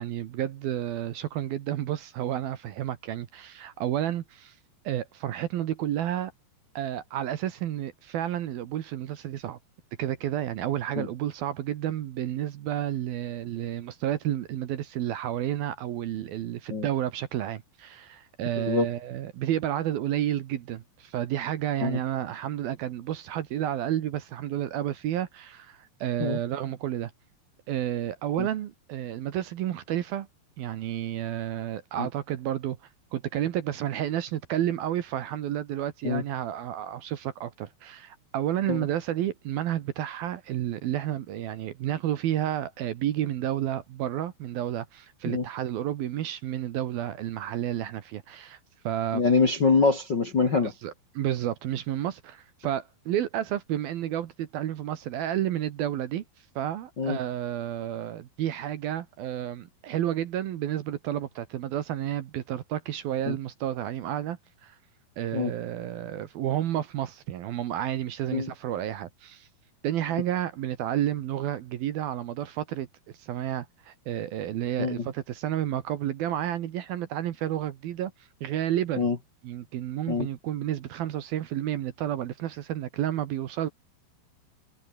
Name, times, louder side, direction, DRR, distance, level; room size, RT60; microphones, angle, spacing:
voice 1, 0.0-4.5 4.8-6.3 6.7-9.6 10.0-27.1 27.7-30.3 30.6-32.8 33.1-48.6 48.8-49.2 50.6-56.2 56.6-64.7 65.2-69.5 69.8-72.9 73.2-78.1 78.4-79.1 79.4-83.7, right 11 dB, 65° right, 2.8 m, -31 dB
voice 2, 18.6-18.9 21.8-22.0 26.2-26.4 28.4-28.5 32.0-32.1 36.0-36.2 38.7-38.8 45.3-45.4 49.1-50.7 57.0-57.2 63.3-63.4 65.3-65.5 68.3-68.5 74.8-75.0 79.0-79.2 80.1-80.3, left 4 dB, 40° left, 1.7 m, -24 dB
omnidirectional pair, 5.2 m